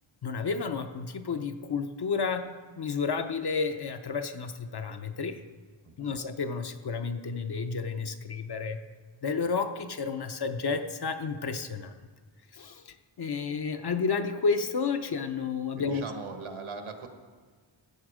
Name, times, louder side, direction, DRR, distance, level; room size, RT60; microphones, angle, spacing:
voice 1, 0.2-2.5 2.8-5.4 6.0-8.8 9.2-11.9 12.5-16.0, left 5 dB, 55° left, 7 dB, 0.7 m, -31 dB
voice 2, 5.8-6.2 15.8-17.1, right 4 dB, 85° right, 5 dB, 1.4 m, -40 dB
15.0 x 8.8 x 4.9 m, 1.5 s
wide cardioid pair, 145°, 48 cm